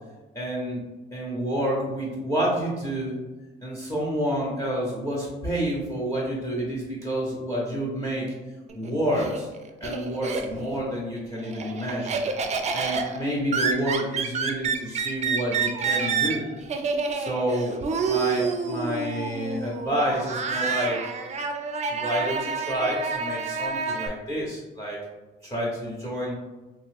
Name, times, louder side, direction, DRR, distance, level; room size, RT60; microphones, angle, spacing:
voice 1, 0.3-0.8 1.1-3.2 3.6-8.3 8.7-9.5 9.8-12.3 12.7-16.4 17.1-21.0 21.9-25.0 25.4-26.3, equal, 15° left, -5 dB, 0.8 m, -29 dB
Laughter, 8.7-10.8 11.2-24.1, right 5 dB, 35° right, 0.4 m, -28 dB
2.7 x 2.3 x 3.3 m, 1.2 s
cardioid pair, 90°, 20 cm